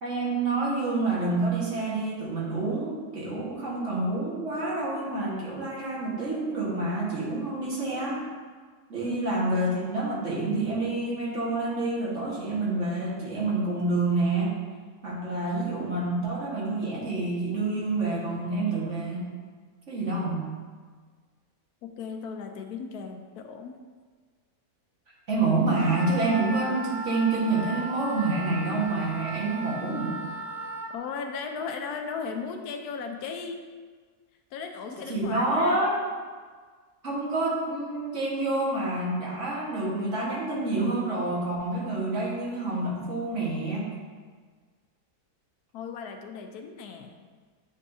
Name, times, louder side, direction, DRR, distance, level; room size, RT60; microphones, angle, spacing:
voice 1, 0.0-8.3 8.9-14.6 15.0-19.3 19.9-20.5 25.3-30.2 35.1-36.0 37.0-43.9, right 2 dB, 50° right, -5 dB, 1.7 m, -28 dB
voice 2, 9.0-9.5 21.8-23.8 30.9-33.6 34.5-35.8 45.7-47.1, left 5 dB, 85° left, 5 dB, 1.2 m, -36 dB
Wind instrument woodwind instrument, 25.7-30.9, right 1 dB, 85° right, 0.4 m, -36 dB
8.3 x 5.5 x 2.7 m, 1.6 s
omnidirectional pair, 1.6 m